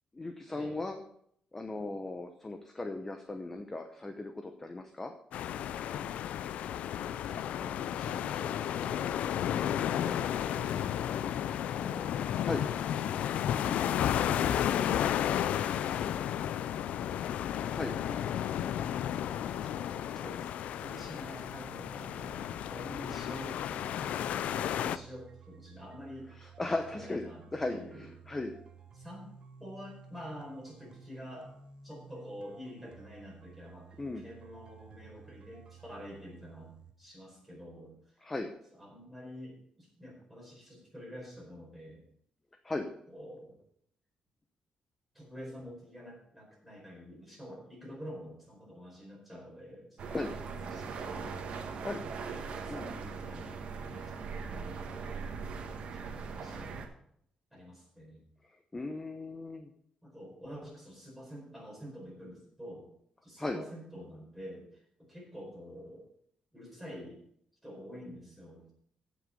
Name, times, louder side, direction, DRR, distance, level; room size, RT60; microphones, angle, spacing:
voice 1, 0.1-1.0 1.5-5.1 12.4-12.6 17.7-17.9 26.3-27.2 27.5-28.5 34.0-34.2 38.2-38.5 42.6-42.9 50.1-50.3 51.8-52.0 52.7-52.9 58.7-59.7 63.4-63.6, left 2 dB, 15° left, 6 dB, 0.8 m, -37 dB
sound 1, 5.3-25.0, left 10 dB, 85° left, 0.4 m, -33 dB
voice 2, 19.5-24.0 24.5-26.3 26.8-27.4 27.7-28.1 28.9-29.3 29.6-31.5 31.8-36.7 37.0-38.2 38.7-42.0 43.1-43.6 45.1-51.4 52.3-53.5 53.9-55.3 55.9-56.8 57.5-58.2 60.0-62.9 63.2-66.0 66.5-67.2 67.6-68.7, equal, ahead, -3 dB, 4.7 m, -48 dB
sound 2, 20.9-36.9, right 5 dB, 45° right, 1.2 m, -54 dB
sound 3, 50.0-56.9, right 5 dB, 60° right, 1.4 m, -40 dB
15.0 x 6.3 x 5.3 m, 0.69 s
wide cardioid pair, 160°, 2 cm